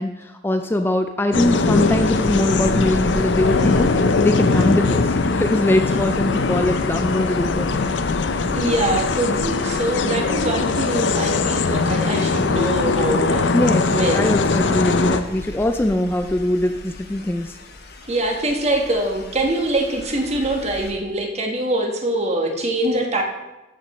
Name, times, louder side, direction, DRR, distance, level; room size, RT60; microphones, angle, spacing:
voice 1, 0.0-7.7 13.5-17.5, left 1 dB, 10° left, 7 dB, 0.4 m, -22 dB
sound 1, 1.3-15.2, left 4 dB, 80° left, 0.6 m, -21 dB
sound 2, 1.7-20.9, left 1 dB, 60° left, 1.0 m, -36 dB
voice 2, 8.5-13.5 13.9-14.4 18.0-23.2, right 1 dB, 35° right, 2 dB, 1.4 m, -23 dB
13.5 x 5.2 x 4.3 m, 1.0 s
head